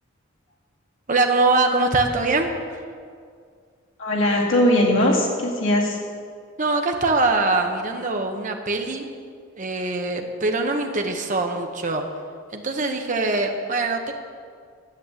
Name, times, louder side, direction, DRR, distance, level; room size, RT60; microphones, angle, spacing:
voice 1, 1.1-2.8 6.6-9.1 9.6-12.0 12.5-14.1, right 3 dB, 40° right, 3 dB, 0.9 m, -23 dB
voice 2, 4.0-6.0, left 1 dB, 75° left, -3 dB, 2.3 m, -20 dB
10.5 x 7.1 x 8.0 m, 2.1 s
head